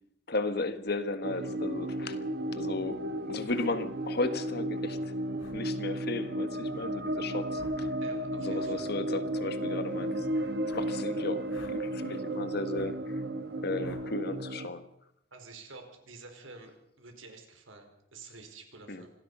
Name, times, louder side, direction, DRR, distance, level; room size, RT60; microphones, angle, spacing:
voice 1, 0.3-2.2 2.5-5.1 5.5-8.0 8.4-13.2 13.6-14.8 18.9-19.1, left 2 dB, 50° left, 10 dB, 1.7 m, -35 dB
sound 1, 1.2-14.7, right 1 dB, 50° right, 1.6 m, -34 dB
sound 2, 3.5-3.7 5.4-5.6 7.5-7.8 8.5-8.7 10.6-10.9 11.5-11.8 12.7-12.9 13.8-14.1, left 2 dB, 75° left, 2.9 m, -50 dB
voice 2, 8.0-8.9 15.3-19.1, right 3 dB, 80° right, 5 dB, 4.9 m, -49 dB
26.0 x 18.0 x 5.6 m, 0.78 s
head